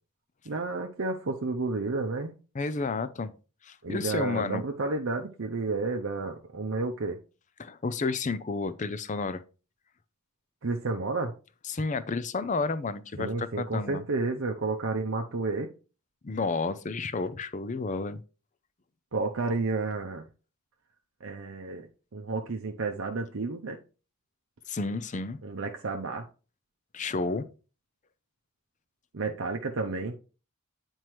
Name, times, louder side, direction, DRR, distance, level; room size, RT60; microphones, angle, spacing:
voice 1, 0.5-2.3 3.8-7.2 10.6-11.3 13.2-15.7 19.1-20.3 21.2-21.9 22.1-23.8 25.4-26.3 29.1-30.1, right 3 dB, 60° right, 0.7 m, -31 dB
voice 2, 2.5-3.3 3.6-4.6 7.6-9.4 11.7-14.0 16.2-18.2 24.7-25.4 26.9-27.5, left 3 dB, 35° left, 0.5 m, -31 dB
9.3 x 4.5 x 3.1 m
head